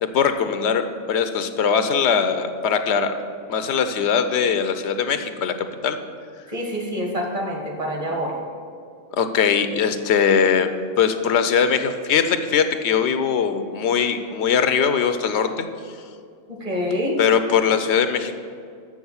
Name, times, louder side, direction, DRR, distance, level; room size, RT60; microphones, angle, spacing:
voice 1, 0.0-3.1 3.5-6.0 9.1-10.7 11.0-15.7 17.2-18.3, left 7 dB, 90° left, 9 dB, 0.9 m, -21 dB
voice 2, 6.5-8.4 16.5-17.2, equal, 35° right, 0 dB, 1.5 m, -26 dB
7.2 x 6.1 x 7.0 m, 2.3 s
omnidirectional pair, 1.1 m